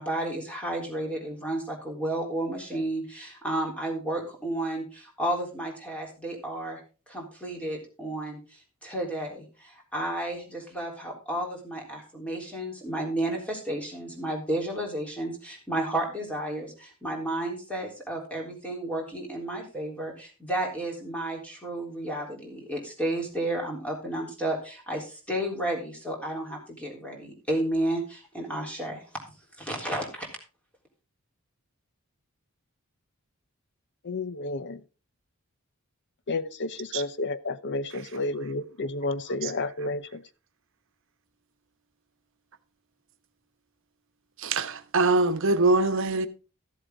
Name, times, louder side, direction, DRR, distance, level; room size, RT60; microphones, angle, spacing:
voice 1, 0.0-6.8 7.1-29.0 29.6-30.3, right 1 dB, 5° left, 3.8 m, -32 dB
voice 2, 34.0-34.8 36.3-40.2, left 2 dB, 55° left, 0.8 m, -31 dB
voice 3, 44.4-46.3, right 3 dB, 65° right, 1.1 m, -23 dB
14.0 x 7.9 x 3.8 m
head